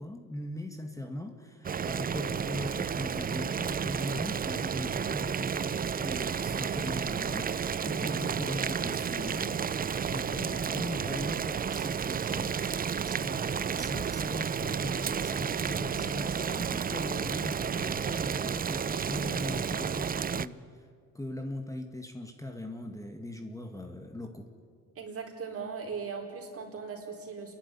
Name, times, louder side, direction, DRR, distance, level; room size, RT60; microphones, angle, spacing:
voice 1, 0.0-9.8 10.0-12.6 13.1-20.8 21.1-24.5, left 1 dB, 10° left, 4 dB, 1.9 m, -39 dB
Boiling, 1.6-20.5, right 7 dB, 30° right, 0.5 m, -32 dB
voice 2, 25.0-27.6, right 5 dB, 50° right, 1 dB, 4.6 m, -39 dB
28.0 x 11.5 x 10.0 m, 2.1 s
cardioid pair, 90°, 30 cm